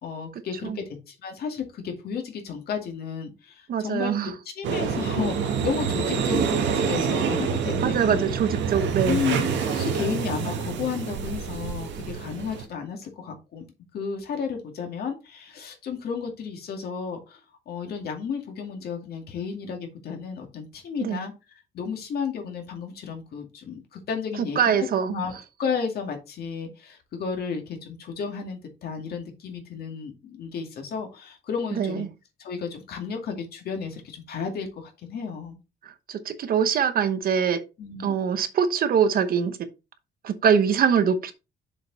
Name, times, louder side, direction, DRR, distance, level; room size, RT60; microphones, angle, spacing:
voice 1, 0.0-8.2 9.1-13.7 13.9-17.4 17.7-25.3 25.6-32.1 32.4-35.6 37.8-38.2, left 6 dB, 55° left, 2.3 m, -33 dB
voice 2, 3.7-4.3 7.8-9.2 21.0-21.3 24.6-25.2 31.7-32.1 35.8-37.6 38.0-39.6 40.2-41.3, right 7 dB, 50° right, 1.0 m, -23 dB
sound 1, 4.6-12.6, right 6 dB, 80° right, 1.7 m, -27 dB
7.0 x 5.2 x 4.0 m
cardioid pair, 160°, 19 cm